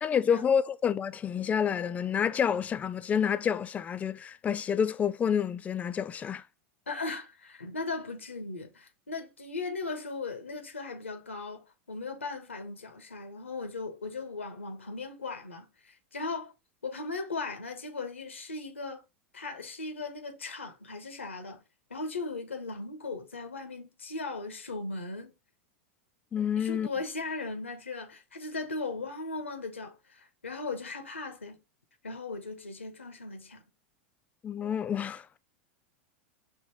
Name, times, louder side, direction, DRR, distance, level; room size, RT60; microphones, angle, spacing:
voice 1, 0.0-6.4 26.3-26.9 34.4-35.4, left 8 dB, 20° left, 0.4 m, -28 dB
voice 2, 6.9-16.5 16.8-19.0 19.3-21.6 21.9-25.3 26.6-31.6 32.0-33.6, left 3 dB, 85° left, 1.0 m, -38 dB
5.0 x 3.0 x 3.0 m
figure-of-eight pair, 90°, 7 cm